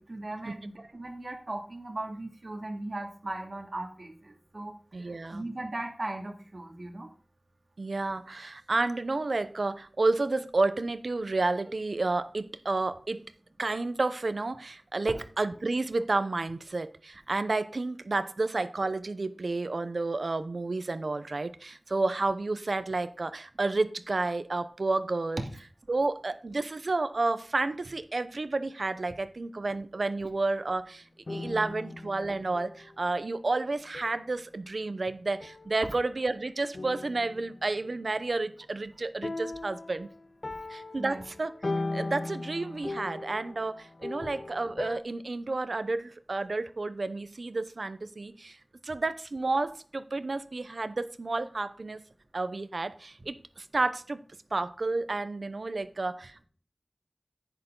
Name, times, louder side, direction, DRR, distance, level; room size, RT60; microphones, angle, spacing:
voice 1, 0.0-4.7 5.0-7.1 25.4-25.5 41.0-41.2, right 2 dB, 50° right, 2.5 m, -38 dB
voice 2, 4.9-5.5 7.8-13.3 13.6-25.4 25.9-31.0 31.3-40.1 40.7-41.5 41.9-48.6 48.8-52.0 52.3-54.2 54.5-56.4, right 3 dB, 70° right, 0.9 m, -31 dB
sound 1, 31.3-33.0 33.9-34.3 35.4-36.2 36.7-38.0 39.2-45.0, left 2 dB, 55° left, 0.6 m, -38 dB
10.5 x 9.1 x 3.9 m
wide cardioid pair, 65°, 0 cm